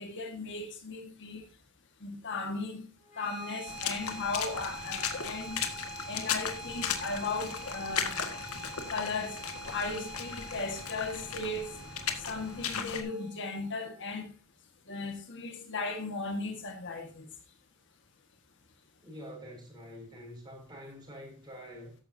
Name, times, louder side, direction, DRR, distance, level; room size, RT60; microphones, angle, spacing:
voice 1, 0.0-1.5 2.0-2.8 3.2-5.6 6.1-8.2 8.9-9.4 9.7-11.7 12.3-14.3 14.9-17.3, left 3 dB, 60° left, 1.8 m, -36 dB
sound 1, 3.0-14.0, right 2 dB, 35° left, 5.1 m, -45 dB
Water / Splash splatter, 3.7-13.0, left 7 dB, 85° left, 1.9 m, -37 dB
voice 2, 19.0-21.9, equal, 20° right, 6.5 m, -46 dB
14.0 x 11.0 x 2.8 m
head